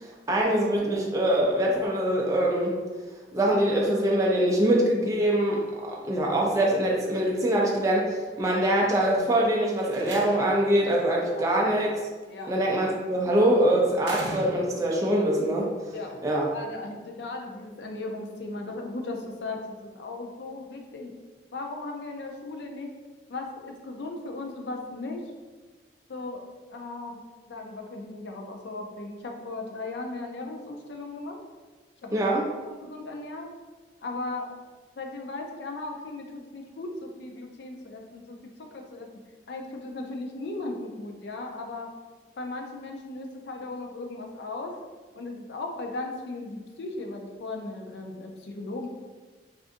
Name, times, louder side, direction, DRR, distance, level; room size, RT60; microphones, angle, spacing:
voice 1, 0.3-2.8 3.3-12.0 12.5-15.7 16.2-16.5 32.1-32.4, right 1 dB, 20° right, -2 dB, 0.4 m, -23 dB
Slam, 9.7-10.7 12.2-12.7 14.0-15.0, right 2 dB, 80° right, 0.6 m, -39 dB
voice 2, 16.5-19.6 19.9-21.1 21.5-22.9 23.3-25.2 26.1-26.4 26.7-27.2 27.5-31.4 32.0-32.4 32.7-33.5 34.0-34.5 35.0-39.1 39.5-41.9 42.4-44.8 45.1-48.9, left 2 dB, 75° left, 2 dB, 0.5 m, -37 dB
3.6 x 2.5 x 2.5 m, 1.3 s
head